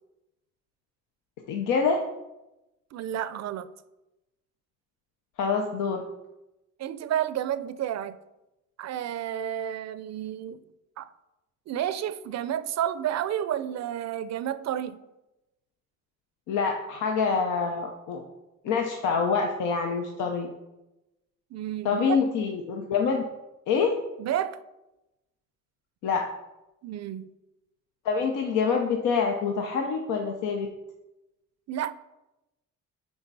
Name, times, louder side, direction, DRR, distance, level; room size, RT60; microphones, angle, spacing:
voice 1, 1.5-2.0 5.4-6.0 16.5-18.3 18.6-20.5 21.8-23.2 23.7-23.9 26.0-26.2 28.0-30.7, left 5 dB, 85° left, 0.7 m, -26 dB
voice 2, 2.9-3.7 6.8-8.2 8.8-10.6 11.0-11.1 11.7-15.0 21.5-22.0 24.2-24.6 26.0-26.2 26.8-27.3 31.7-31.9, right 10 dB, 60° right, 0.5 m, -31 dB
9.5 x 3.6 x 4.0 m
cardioid pair, 90°, 30 cm